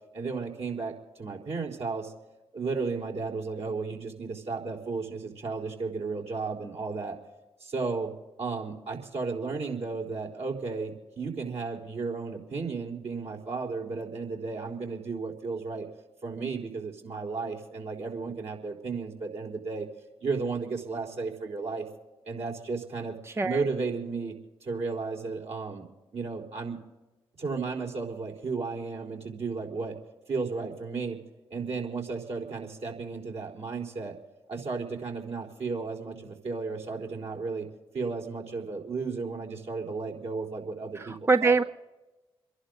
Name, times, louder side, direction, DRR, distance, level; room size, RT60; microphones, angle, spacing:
voice 1, 0.1-2.1 2.5-7.2 7.6-8.1 8.4-15.9 16.2-19.9 20.2-21.9 22.2-23.1 23.4-24.3 24.6-25.8 26.1-26.8 27.4-29.9 30.3-31.2 31.5-34.2 34.5-37.7 37.9-41.5, right 4 dB, 60° right, -1 dB, 4.2 m, -34 dB
voice 2, 23.3-23.6 40.9-41.6, right 4 dB, 20° right, 11 dB, 0.6 m, -24 dB
28.5 x 11.5 x 4.0 m, 1.1 s
hypercardioid pair, 45°, 12 cm